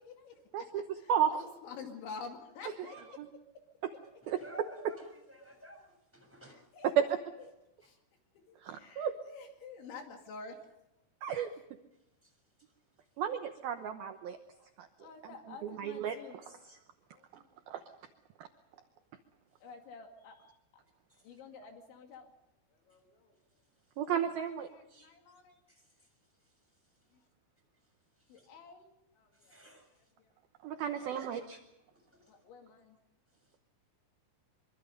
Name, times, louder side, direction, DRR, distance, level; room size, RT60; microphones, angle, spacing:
voice 1, 0.1-0.7 1.0-3.2 6.4-7.2 7.8-8.0 8.3-10.6 14.5-14.7 15.0-16.7 17.1-17.7 19.6-20.6 21.2-22.3 22.7-23.4 24.2-25.6 27.1-27.2 28.3-28.9 29.2-29.6 30.0-30.3 32.3-33.0, left 5 dB, 65° left, 3 dB, 4.6 m, -50 dB
voice 2, 4.2-6.6 7.8-7.9 12.2-12.3 21.1-21.2 25.7-26.1 28.3-28.5 29.3-29.9 30.8-31.5 32.1-32.3, right 1 dB, ahead, 3 dB, 6.1 m, -53 dB
voice 3, 8.6-9.1 11.2-11.5 13.2-14.4 14.8-14.9 15.6-16.8 17.3-17.8 18.4-18.5 24.0-25.1 30.6-31.6, right 9 dB, 85° right, 6 dB, 2.1 m, -33 dB
24.5 x 24.5 x 5.3 m, 0.91 s
omnidirectional pair, 5.9 m